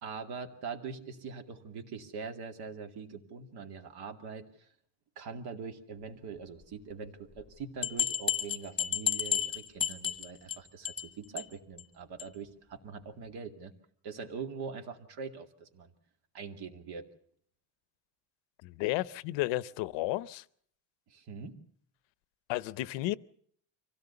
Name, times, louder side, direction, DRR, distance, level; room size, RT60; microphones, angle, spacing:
voice 1, 0.0-4.7 5.2-13.7 14.0-15.9 16.3-17.1 21.1-21.6, right 5 dB, 60° right, 2.4 m, -43 dB
sound 1, 7.4-7.5 7.8-10.6 10.8-11.1 11.4-11.5 11.8-11.9 12.2-12.3, left 9 dB, 10° left, 1.2 m, -31 dB
voice 2, 18.6-20.4 22.5-23.2, left 17 dB, 85° left, 0.8 m, -32 dB
25.0 x 16.5 x 6.9 m
cardioid pair, 155°, 43 cm